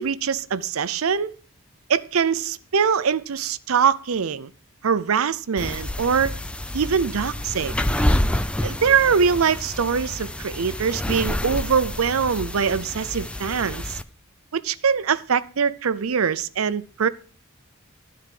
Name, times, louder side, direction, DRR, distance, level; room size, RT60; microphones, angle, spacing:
voice 1, 0.0-1.3 1.9-4.5 4.8-6.3 6.7-7.7 8.6-14.0 14.5-17.1, right 6 dB, 85° right, 0.6 m, -23 dB
sound 1, 5.6-14.0, left 1 dB, 5° left, 0.4 m, -28 dB
12.5 x 4.6 x 7.5 m
head